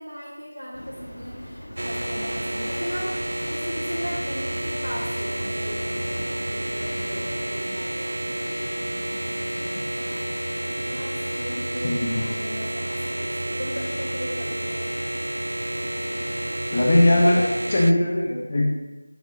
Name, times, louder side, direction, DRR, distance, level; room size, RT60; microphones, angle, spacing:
voice 1, 0.0-10.2 10.6-15.0, equal, 85° right, -7 dB, 2.0 m, -38 dB
sound 1, 0.7-7.4, equal, 60° left, 1.7 m, -41 dB
sound 2, 1.8-17.9, right 1 dB, 65° right, 0.3 m, -30 dB
voice 2, 11.8-12.2 16.7-18.6, left 1 dB, 30° left, -1 dB, 0.9 m, -20 dB
9.2 x 6.9 x 2.9 m, 1.1 s
figure-of-eight pair, 170°, 0 cm